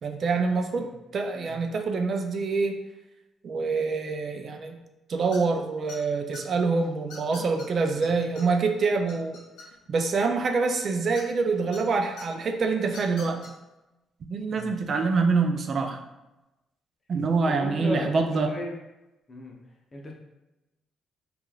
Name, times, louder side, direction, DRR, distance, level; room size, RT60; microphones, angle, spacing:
voice 1, 0.0-0.9 1.1-2.8 3.4-4.8 5.1-9.4 9.9-13.4 14.3-16.0 17.1-18.5, right 4 dB, 50° right, 5 dB, 0.3 m, -26 dB
sound 1, 5.3-5.6 5.9-6.4 7.1-7.7 8.0-8.1 8.4-8.5 8.8-10.0 11.1-11.8 12.2-12.3 12.9-13.5, left 3 dB, 80° left, 0.6 m, -43 dB
voice 2, 17.5-18.7 19.3-19.5 19.9-20.1, left 1 dB, 35° left, 0 dB, 0.6 m, -36 dB
3.0 x 2.3 x 2.3 m, 0.99 s
cardioid pair, 90°, 0 cm